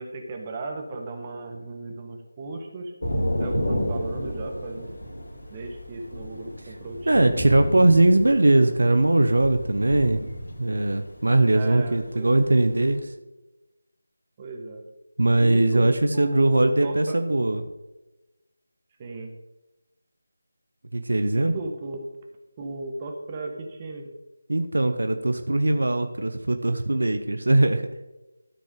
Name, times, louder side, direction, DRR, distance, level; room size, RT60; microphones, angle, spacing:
voice 1, 0.0-2.9 3.4-5.0 5.5-7.5 11.5-12.3 14.4-14.8 15.4-17.2 19.0-19.3 21.3-22.0 22.6-24.1, right 2 dB, 25° right, 2 dB, 1.4 m, -35 dB
Thunder / Rain, 3.0-13.0, equal, 70° left, 2.4 m, -32 dB
voice 2, 7.0-10.2 10.6-13.1 15.2-17.7 20.9-21.6 24.5-27.9, right 2 dB, 70° right, 8 dB, 0.8 m, -20 dB
12.5 x 5.2 x 5.2 m, 1.0 s
figure-of-eight pair, 160°, 0 cm